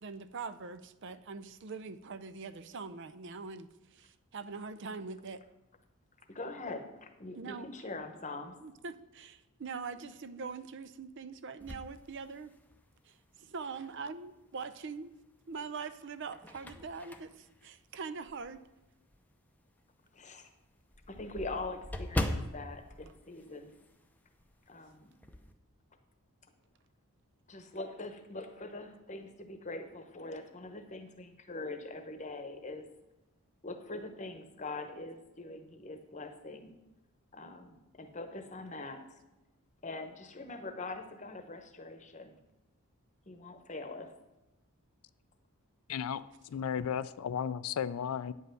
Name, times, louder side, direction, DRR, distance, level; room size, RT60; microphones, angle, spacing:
voice 1, 0.0-5.4 7.4-7.7 8.6-12.5 13.0-15.1 15.5-18.6, right 4 dB, 55° right, 13 dB, 0.5 m, -43 dB
voice 2, 6.3-8.6 20.1-20.5 21.1-23.7 24.7-25.1 27.5-32.8 33.6-36.7 37.3-39.0 39.8-42.4 43.3-44.1, left 2 dB, 30° left, 7 dB, 1.0 m, -43 dB
sound 1, 11.6-12.9 13.5-13.6 15.0-15.6 16.0-18.7 19.1-19.2 19.6-19.7 20.0-20.1 20.3-24.1 24.4-24.6 24.9-25.5, left 1 dB, 5° left, 0.6 m, -40 dB
voice 3, 45.9-48.3, left 8 dB, 75° left, 15 dB, 0.4 m, -34 dB
9.6 x 5.5 x 7.6 m, 0.98 s
head